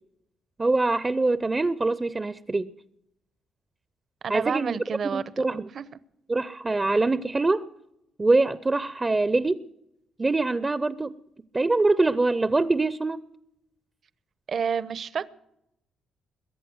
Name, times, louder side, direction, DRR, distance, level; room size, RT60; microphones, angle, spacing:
voice 1, 0.6-2.7 4.3-4.8 5.1-5.7 6.3-7.7 8.2-9.7 10.2-11.1 11.5-13.2, right 3 dB, 20° right, 0.6 m, -24 dB
voice 2, 4.2-5.8 14.5-15.3, right 6 dB, 55° right, 0.8 m, -30 dB
22.0 x 8.3 x 7.8 m
cardioid pair, 90°, 0 cm